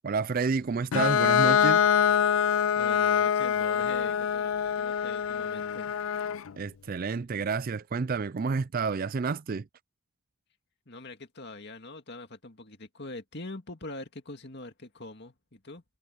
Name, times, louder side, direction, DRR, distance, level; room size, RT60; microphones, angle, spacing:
voice 1, 0.0-1.8 6.6-9.7, right 4 dB, 40° right, 0.4 m, -29 dB
Bowed string instrument, 0.9-6.5, left 8 dB, 65° left, 0.4 m, -25 dB
voice 2, 2.8-5.9 10.9-15.8, left 2 dB, 50° left, 2.3 m, -43 dB
head